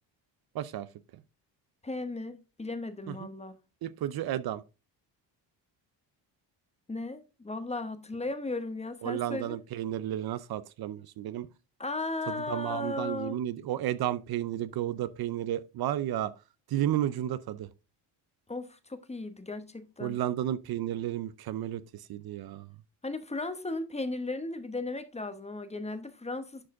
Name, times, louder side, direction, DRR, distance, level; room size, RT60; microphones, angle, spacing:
voice 1, 0.5-0.9 3.1-3.3 3.8-4.6 9.0-11.5 12.3-16.3 16.7-17.7 20.0-22.7, right 12 dB, 60° right, 0.6 m, -32 dB
voice 2, 1.8-3.6 6.9-9.6 11.8-13.4 18.5-20.2 23.0-26.7, left 2 dB, 15° left, 1.0 m, -36 dB
11.0 x 4.8 x 3.6 m
cardioid pair, 95°, 43 cm